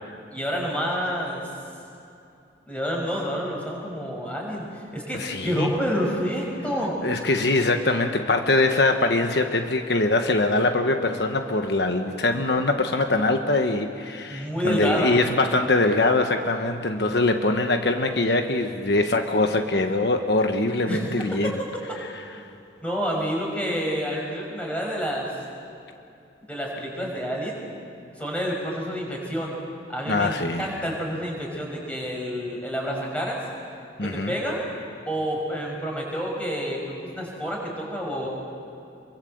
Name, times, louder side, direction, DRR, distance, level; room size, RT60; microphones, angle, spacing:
voice 1, 0.3-1.4 2.7-7.0 14.3-15.2 20.8-21.0 22.8-25.3 26.5-27.6 28.2-29.5 29.9-33.4 34.0-34.6 35.1-38.3, equal, 5° left, -2 dB, 5.7 m, -28 dB
voice 2, 5.1-5.7 7.0-21.6 30.1-30.8 34.0-34.3, left 2 dB, 70° left, 5 dB, 1.2 m, -23 dB
26.5 x 23.5 x 7.9 m, 2.6 s
head